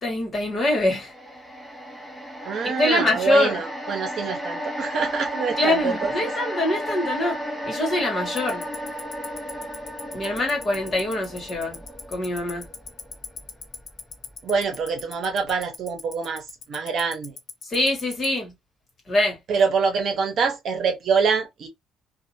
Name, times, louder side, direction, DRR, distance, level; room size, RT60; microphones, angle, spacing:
voice 1, 0.0-1.1 2.8-3.6 5.6-7.4 7.6-8.6 10.1-11.8 12.1-12.7 17.6-18.5 19.1-19.4, left 1 dB, 30° left, 1.6 m, -24 dB
sound 1, 0.7-15.0 15.4-15.5, equal, 5° left, 0.9 m, -34 dB
voice 2, 2.4-6.1 14.4-17.3 19.5-21.7, right 5 dB, 55° right, 1.0 m, -25 dB
Tick-tock, 8.4-18.3, left 7 dB, 45° left, 0.6 m, -36 dB
2.7 x 2.6 x 2.7 m
cardioid pair, 125°, 0 cm